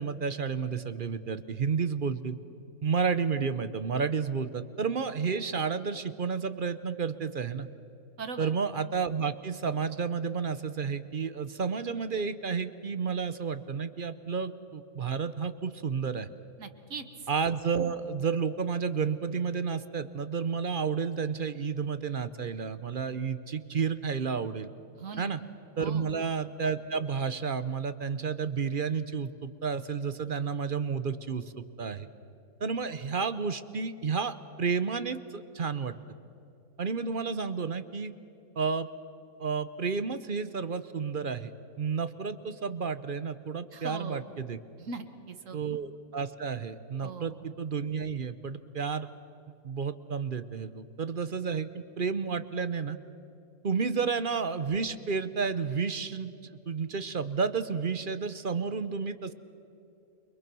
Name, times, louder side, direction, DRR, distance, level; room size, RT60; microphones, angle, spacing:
voice 1, 0.0-2.4 2.8-7.7 8.4-16.3 17.3-24.7 25.2-25.4 25.8-32.1 32.6-35.9 36.8-38.1 38.6-38.9 39.4-41.5 41.8-44.6 45.5-49.1 49.6-53.0 53.6-59.3, right 5 dB, 45° right, 13 dB, 0.8 m, -31 dB
voice 2, 8.2-8.5 16.6-17.1 25.0-25.3 25.8-26.1 43.7-44.2 44.8-45.6 47.0-47.4, right 4 dB, 70° right, 9 dB, 1.7 m, -40 dB
29.0 x 23.0 x 6.1 m, 2.7 s
omnidirectional pair, 1.4 m